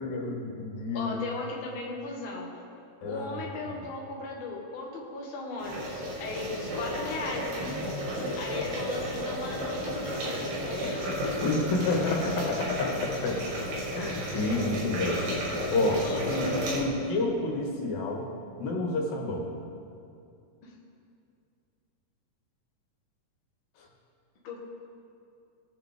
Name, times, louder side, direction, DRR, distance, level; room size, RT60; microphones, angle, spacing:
voice 1, 0.0-1.1 3.0-3.4 11.4-13.4 13.9-15.2 15.7-18.3 18.6-19.5, left 2 dB, 80° left, -1 dB, 3.2 m, -29 dB
voice 2, 0.9-2.5 3.0-7.5 8.4-11.2 14.4-14.6 16.0-16.2 20.6-20.7 24.4-24.6, left 3 dB, 50° left, -2 dB, 1.7 m, -37 dB
sound 1, 5.6-16.8, equal, 75° right, 3.7 m, -33 dB
20.0 x 6.8 x 3.6 m, 2.5 s
omnidirectional pair, 4.1 m